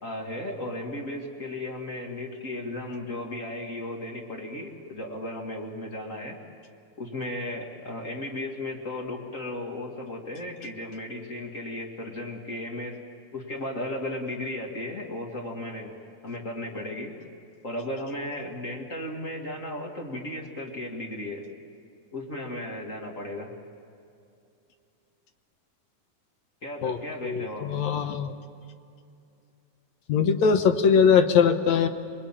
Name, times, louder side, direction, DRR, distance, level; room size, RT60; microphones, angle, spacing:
voice 1, 0.0-6.4 7.0-13.0 13.3-15.9 16.2-17.1 17.6-21.5 22.1-23.5 26.6-27.7, left 1 dB, 30° left, 1 dB, 2.0 m, -35 dB
voice 2, 27.2-28.3 30.1-31.9, left 6 dB, 70° left, 8 dB, 2.2 m, -21 dB
25.5 x 20.5 x 8.9 m, 2.6 s
omnidirectional pair, 3.5 m